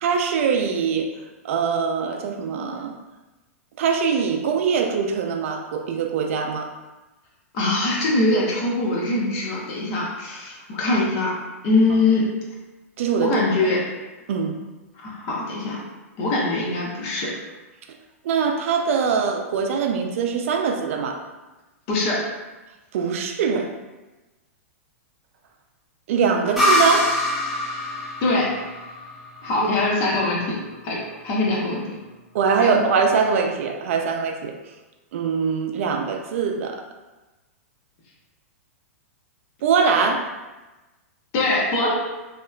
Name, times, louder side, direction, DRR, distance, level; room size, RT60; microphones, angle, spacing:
voice 1, 0.0-1.1 1.4-2.9 3.8-6.7 13.0-13.4 14.3-14.5 18.2-21.2 22.9-23.7 26.1-27.2 29.6-29.7 32.3-34.5 35.1-36.8 39.6-40.3, right 6 dB, 65° right, 3 dB, 0.3 m, -22 dB
voice 2, 7.5-11.3 11.6-12.3 13.2-13.8 15.0-15.8 16.2-17.3 21.9-22.2 28.2-28.5 29.4-30.6 30.8-31.8 32.6-32.9 41.3-41.9, left 2 dB, 40° left, -3 dB, 0.8 m, -22 dB
sound 1, 26.6-30.1, left 1 dB, ahead, 0.7 m, -24 dB
2.8 x 2.1 x 2.3 m, 1.1 s
hypercardioid pair, 125°, 8 cm